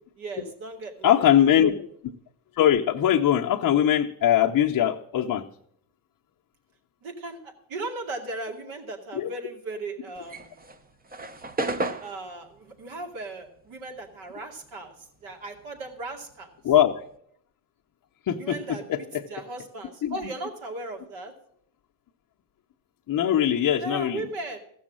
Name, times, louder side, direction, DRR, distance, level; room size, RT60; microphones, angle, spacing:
voice 1, 0.2-1.3 7.0-7.4 7.7-10.5 12.0-14.9 15.2-16.5 18.4-18.9 19.3-21.3 23.8-24.6, right 2 dB, 70° right, 2 dB, 2.6 m, -37 dB
voice 2, 1.0-1.9 2.6-5.4 9.1-9.3 16.6-17.0 18.3-19.2 20.0-20.2 23.1-24.3, left 10 dB, 40° left, -1 dB, 0.8 m, -22 dB
sound 1, 10.2-14.9 15.2-17.2, right 2 dB, 20° right, 0.8 m, -34 dB
14.5 x 6.3 x 7.4 m, 0.70 s
cardioid pair, 95°, 49 cm